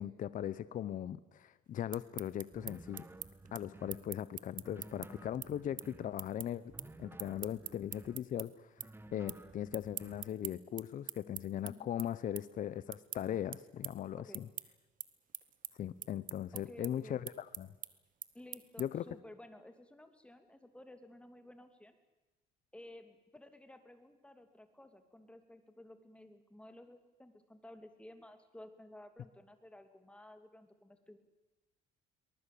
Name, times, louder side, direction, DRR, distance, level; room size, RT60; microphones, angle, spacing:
voice 1, 0.0-3.0 3.5-6.6 7.0-8.7 9.1-14.5 15.8-17.7 18.8-19.0, left 10 dB, 50° left, 16 dB, 0.8 m, -39 dB
sound 1, 1.7-8.5 8.8-9.4 9.7-19.1, right 10 dB, 50° right, 1.2 m, -45 dB
sound 2, 2.5-4.1 4.6-6.2 6.7-8.3 8.8-10.4, right 2 dB, 15° right, 1.5 m, -54 dB
voice 2, 16.5-17.3 18.3-21.9 22.7-31.2, left 1 dB, 5° left, 8 dB, 2.7 m, -54 dB
23.5 x 20.0 x 8.5 m, 1.1 s
cardioid pair, 110°, 17 cm